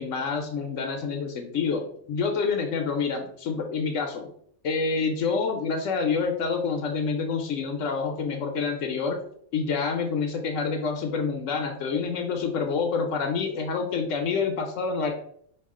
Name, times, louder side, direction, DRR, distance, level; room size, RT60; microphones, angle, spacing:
voice 1, 0.0-4.3 4.6-9.2 9.5-15.1, left 5 dB, 70° left, 4 dB, 1.0 m, -27 dB
4.7 x 2.4 x 3.6 m, 0.64 s
omnidirectional pair, 1.4 m